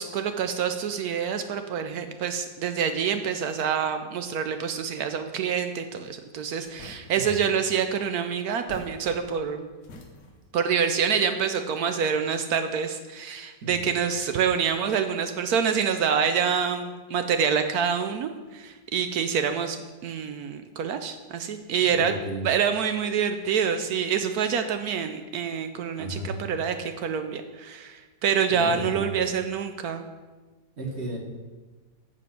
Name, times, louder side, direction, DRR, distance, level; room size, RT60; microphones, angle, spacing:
voice 1, 0.0-9.7 10.5-19.8 20.0-22.1 22.4-30.1, right 7 dB, 75° right, 8 dB, 0.9 m, -26 dB
sound 1, 6.6-7.4 8.5-9.5 9.8-10.5, left 1 dB, 50° left, 1.1 m, -46 dB
voice 2, 21.9-22.4 26.0-26.3 28.5-29.1 30.8-31.2, right 1 dB, 40° right, -1 dB, 1.4 m, -34 dB
7.9 x 5.0 x 5.7 m, 1.3 s
omnidirectional pair, 2.0 m